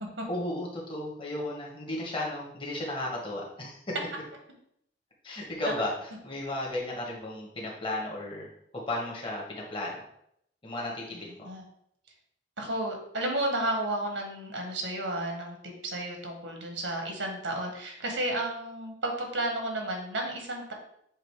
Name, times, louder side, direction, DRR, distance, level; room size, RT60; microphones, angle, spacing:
voice 1, 0.3-4.0 5.2-8.5 8.9-10.0 10.6-11.5, left 1 dB, 30° left, -3 dB, 1.6 m, -34 dB
voice 2, 12.6-15.6 15.8-20.7, right 1 dB, 90° right, 2 dB, 1.5 m, -32 dB
7.5 x 2.6 x 4.8 m, 0.73 s
head